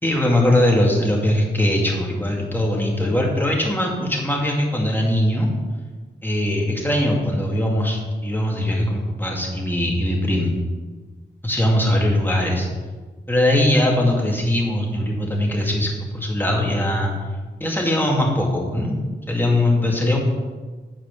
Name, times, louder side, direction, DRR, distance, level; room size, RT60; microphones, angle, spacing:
voice 1, 0.0-5.5 6.2-10.5 11.4-12.7 13.3-17.1 17.6-19.0 19.3-20.2, left 1 dB, 10° left, -1 dB, 2.4 m, -21 dB
9.3 x 4.9 x 7.6 m, 1.4 s
wide cardioid pair, 80°, 19 cm